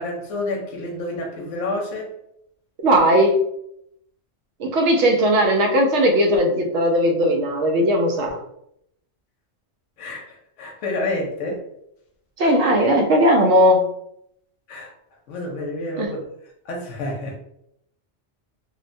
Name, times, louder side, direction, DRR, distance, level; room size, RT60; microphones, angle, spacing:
voice 1, 0.0-2.1 10.0-10.2 10.6-11.6 14.7-14.9 15.3-16.2 16.7-17.4, left 2 dB, 85° left, 0 dB, 0.9 m, -28 dB
voice 2, 2.8-3.4 4.6-8.4 12.4-13.9 16.0-16.1, equal, 75° right, 2 dB, 0.9 m, -18 dB
2.8 x 2.1 x 2.5 m, 0.76 s
omnidirectional pair, 1.2 m